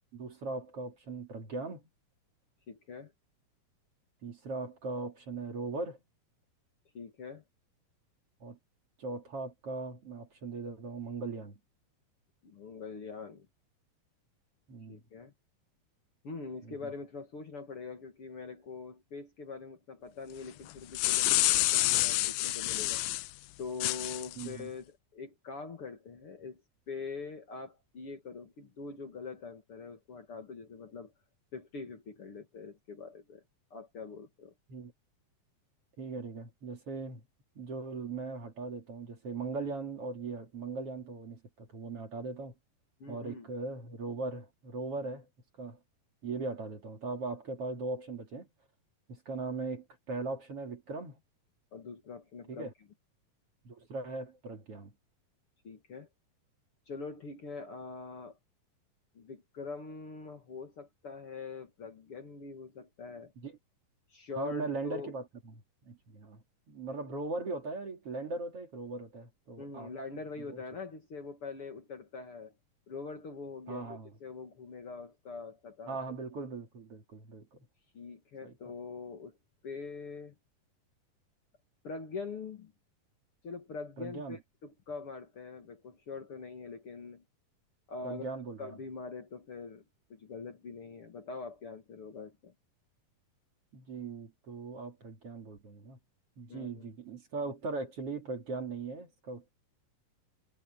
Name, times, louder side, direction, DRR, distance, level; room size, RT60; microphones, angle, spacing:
voice 1, 0.1-1.8 4.2-6.0 8.4-8.6 9.0-11.6 14.7-15.0 16.7-16.9 24.4-24.7 34.7-34.9 36.0-37.2 37.5-42.5 43.1-45.3 45.6-45.8 46.2-48.5 49.1-51.2 52.5-52.7 53.6-54.9 63.4-63.6 64.4-65.5 65.8-69.9 70.5-70.6 73.7-74.1 75.9-77.6 78.4-78.5 84.0-84.4 88.0-88.7 93.7-96.0 96.4-99.5, right 3 dB, 45° right, 3.2 m, -39 dB
voice 2, 2.7-3.1 6.9-7.4 12.4-13.5 14.9-15.3 16.2-23.0 23.6-26.6 26.9-31.1 31.5-33.4 33.7-34.5 43.0-43.5 51.7-52.7 55.6-56.1 56.9-58.4 59.1-63.3 64.1-65.1 69.6-72.5 72.9-76.0 77.9-79.4 79.6-80.4 81.8-82.7 83.4-87.2 87.9-88.2 88.6-89.8 90.1-92.5 96.5-96.9, left 4 dB, 45° left, 2.7 m, -43 dB
sound 1, 20.7-23.3 23.8-24.5, left 19 dB, 85° left, 2.3 m, -28 dB
omnidirectional pair, 4.0 m